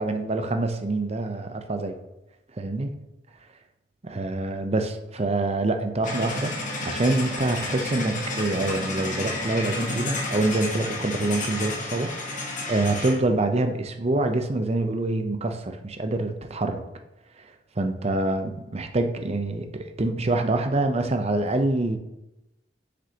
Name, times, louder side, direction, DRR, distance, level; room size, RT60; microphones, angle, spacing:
voice 1, 0.0-2.0 2.6-2.9 4.0-16.8 17.8-22.0, right 2 dB, 35° right, 6 dB, 0.6 m, -26 dB
sound 1, 6.0-13.2, left 2 dB, 45° left, 1.4 m, -31 dB
7.6 x 6.8 x 2.9 m, 0.95 s
head